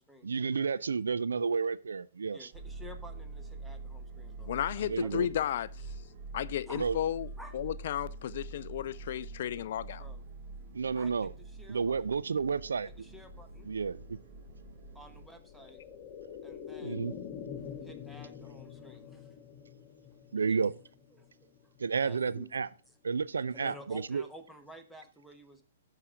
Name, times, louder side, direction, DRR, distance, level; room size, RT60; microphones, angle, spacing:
voice 1, 0.2-2.5 4.8-5.3 6.8-7.0 10.7-11.3 11.7-12.9 13.7-14.2 16.8-17.1 20.3-20.7 21.8-22.7 23.0-24.2, right 5 dB, 75° right, 0.3 m, -31 dB
voice 2, 2.3-5.6 6.7-6.8 7.4-7.5 10.0-10.2 10.9-12.0 13.0-13.7 14.9-15.8 16.4-17.2 17.8-19.3 20.5-20.6 21.1-21.3 21.6-21.7 22.0-22.5 22.9-23.0 23.5-25.6, equal, ahead, 1.1 m, -52 dB
sound 1, 2.5-15.3, right 3 dB, 45° right, 1.1 m, -45 dB
voice 3, 4.5-5.7 6.3-10.0, left 10 dB, 55° left, 0.3 m, -33 dB
sound 2, 12.8-22.4 22.7-22.8, left 7 dB, 35° left, 1.3 m, -47 dB
12.5 x 4.9 x 3.6 m
figure-of-eight pair, 120°, 0 cm